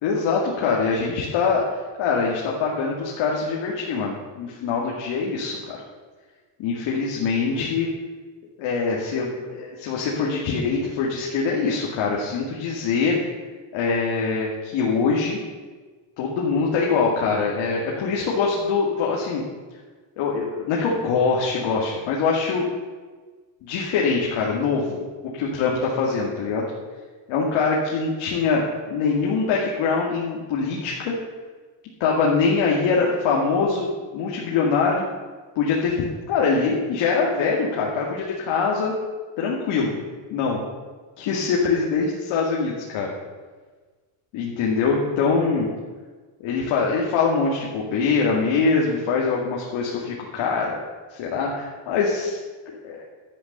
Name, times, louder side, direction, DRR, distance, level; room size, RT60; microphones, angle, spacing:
voice 1, 0.0-1.6 2.0-5.8 6.6-7.9 8.6-13.2 13.7-15.4 16.2-19.4 20.2-22.7 23.6-25.0 25.3-26.7 27.3-28.6 28.9-31.1 32.0-33.9 34.1-35.0 35.6-36.0 36.3-38.9 39.4-39.9 40.3-40.6 41.2-43.1 44.3-45.7 46.4-50.8 51.1-52.4 52.7-53.0, left 4 dB, 75° left, -3 dB, 2.3 m, -23 dB
12.0 x 8.5 x 6.7 m, 1.4 s
cardioid pair, 180°, 47 cm